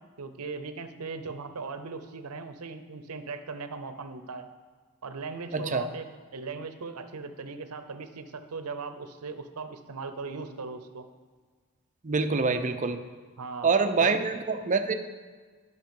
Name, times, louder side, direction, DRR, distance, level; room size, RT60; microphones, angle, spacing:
voice 1, 0.0-4.5 5.0-6.1 6.3-11.1 13.4-13.7 14.0-14.2, right 4 dB, 80° right, 10 dB, 0.7 m, -38 dB
voice 2, 5.5-5.9 12.0-13.0 13.6-14.9, right 4 dB, 35° right, 8 dB, 0.6 m, -25 dB
10.5 x 5.8 x 5.3 m, 1.5 s
head